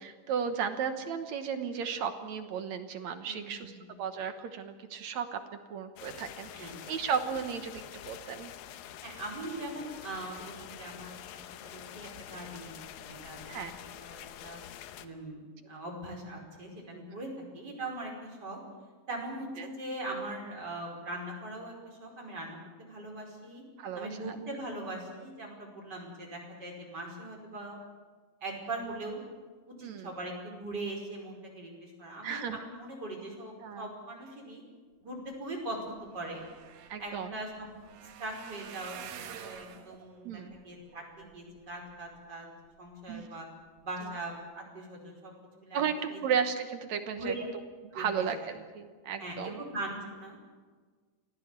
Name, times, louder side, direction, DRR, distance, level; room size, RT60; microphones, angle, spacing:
voice 1, 0.0-5.4 5.7-8.5 13.5-13.7 19.6-19.7 23.8-24.4 29.8-30.1 32.2-32.6 33.6-33.9 36.9-37.4 40.2-40.6 43.1-43.3 45.7-47.3 47.9-49.6, right 7 dB, 60° right, 8 dB, 2.2 m, -34 dB
voice 2, 3.2-3.9 6.6-6.7 9.0-14.6 15.0-17.3 17.5-18.6 19.1-23.6 23.9-27.8 28.4-29.2 29.7-34.6 35.0-36.4 37.0-37.5 37.9-42.5 42.8-43.5 43.8-45.3 45.6-45.8 46.1-46.2 47.2-47.5 47.9-48.1 49.2-50.4, right 2 dB, 30° right, 0 dB, 5.6 m, -41 dB
sound 1, 6.0-15.1, left 11 dB, 90° left, 2.7 m, -47 dB
sound 2, 35.5-35.6 35.8-42.2 42.7-43.2 43.6-43.8 44.1-44.2, right 8 dB, 90° right, 3.2 m, -49 dB
25.5 x 16.5 x 8.2 m, 1.5 s
omnidirectional pair, 4.0 m